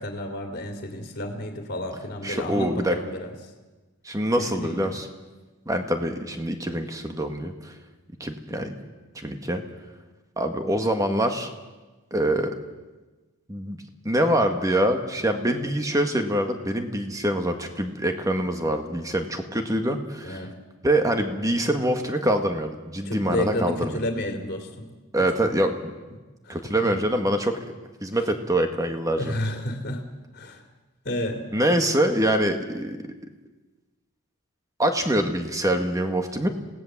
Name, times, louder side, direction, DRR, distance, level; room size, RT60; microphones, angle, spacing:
voice 1, 0.0-3.3 4.4-4.9 20.2-20.5 23.0-24.9 25.2-25.5 26.5-26.6 29.2-30.0 30.3-30.6 31.0-31.5, left 1 dB, 45° left, 3 dB, 2.5 m, -31 dB
voice 2, 2.2-3.0 4.1-5.1 5.7-7.7 8.2-8.7 9.2-9.6 10.4-11.5 12.1-12.5 13.5-13.8 14.1-20.4 20.8-24.0 25.1-25.7 26.5-27.5 28.0-29.3 31.5-33.0 34.8-36.5, right 1 dB, 15° right, 5 dB, 1.8 m, -24 dB
26.5 x 17.5 x 7.4 m, 1.2 s
head